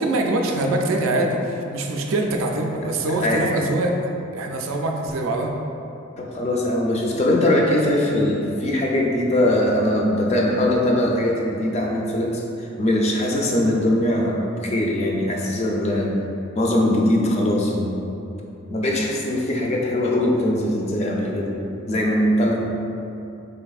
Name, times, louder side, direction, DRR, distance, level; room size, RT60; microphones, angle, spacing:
voice 1, 0.0-3.9 4.3-5.5, right 2 dB, 70° right, 2 dB, 0.4 m, -23 dB
voice 2, 3.2-3.5 6.2-16.2 16.6-18.0 18.7-22.6, left 1 dB, 30° left, -1 dB, 0.4 m, -21 dB
3.9 x 3.3 x 2.3 m, 2.7 s
head